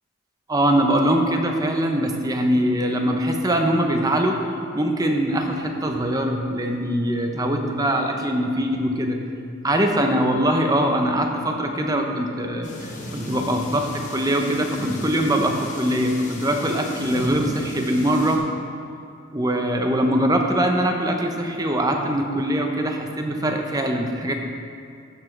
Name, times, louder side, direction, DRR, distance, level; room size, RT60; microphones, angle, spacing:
voice 1, 0.5-4.4 4.7-9.2 9.6-18.4 19.3-24.4, right 1 dB, 20° right, 3 dB, 0.7 m, -22 dB
sound 1, 12.6-18.4, equal, 40° left, 1.3 m, -35 dB
13.5 x 7.0 x 3.3 m, 2.4 s
head